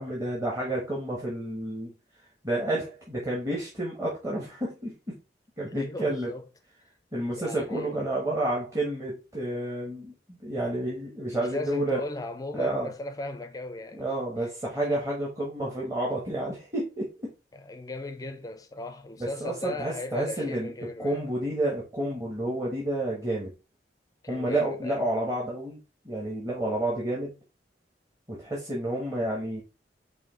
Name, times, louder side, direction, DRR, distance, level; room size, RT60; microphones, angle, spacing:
voice 1, 0.0-1.9 2.4-5.2 5.6-6.3 7.1-12.0 12.5-12.9 13.9-17.1 19.4-20.7 21.0-23.5 24.3-25.8 26.0-27.3 28.3-29.6, right 1 dB, 20° right, 1.2 m, -30 dB
voice 2, 5.7-6.4 7.4-8.0 11.3-14.1 14.4-14.5 17.5-21.2 24.2-25.0, left 2 dB, 20° left, 0.5 m, -37 dB
5.0 x 2.7 x 3.7 m
head